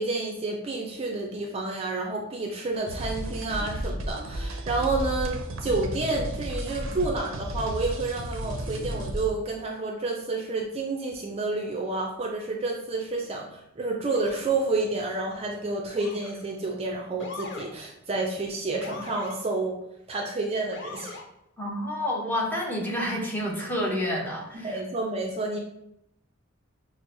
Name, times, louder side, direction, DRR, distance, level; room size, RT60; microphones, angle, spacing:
voice 1, 0.0-19.8 20.1-21.2 24.5-25.6, right 3 dB, 30° right, 0 dB, 0.4 m, -29 dB
sound 1, 2.9-9.3, right 1 dB, 85° right, 0.5 m, -33 dB
Motor vehicle (road) / Siren, 14.1-14.5 15.9-16.5 17.2-17.7 18.8-19.4 20.7-21.3, left 3 dB, 60° left, 0.5 m, -41 dB
voice 2, 21.6-24.8, left 1 dB, 10° left, -2 dB, 0.7 m, -29 dB
6.0 x 2.0 x 2.6 m, 0.78 s
head